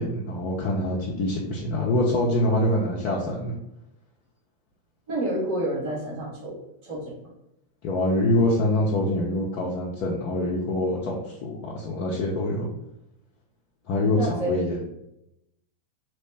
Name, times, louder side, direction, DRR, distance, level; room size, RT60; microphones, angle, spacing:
voice 1, 0.0-3.5 7.8-12.7 13.9-14.8, left 1 dB, 50° left, -4 dB, 0.6 m, -25 dB
voice 2, 5.1-7.2 14.2-14.5, right 1 dB, 55° right, -2 dB, 1.1 m, -29 dB
2.9 x 2.1 x 3.3 m, 0.86 s
hypercardioid pair, 95°, 0 cm